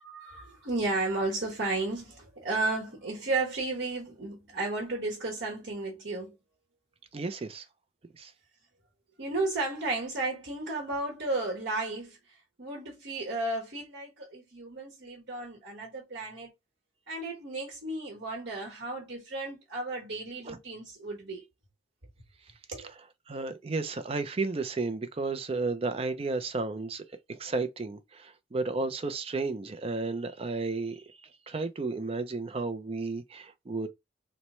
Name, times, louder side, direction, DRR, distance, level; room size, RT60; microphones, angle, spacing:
voice 1, 0.0-6.3 9.2-16.5 17.1-21.4 22.7-22.9, right 2 dB, 70° right, 1.1 m, -33 dB
voice 2, 7.1-7.6 8.2-8.3 23.3-27.0 27.3-31.0 31.5-33.9, right 3 dB, 30° right, 0.4 m, -32 dB
3.0 x 2.2 x 4.1 m
head